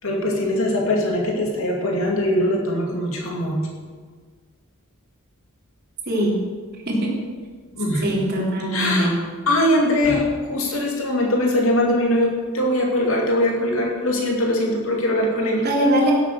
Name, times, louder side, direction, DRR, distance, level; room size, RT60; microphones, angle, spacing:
voice 1, 0.0-3.6 7.7-8.2 8.6-9.1 9.5-15.7, left 1 dB, 70° left, 0 dB, 2.7 m, -21 dB
voice 2, 6.1-6.4 6.9-7.2 8.0-9.1 15.5-16.1, right 1 dB, 50° right, -2 dB, 3.4 m, -21 dB
16.0 x 8.3 x 6.7 m, 1.5 s
head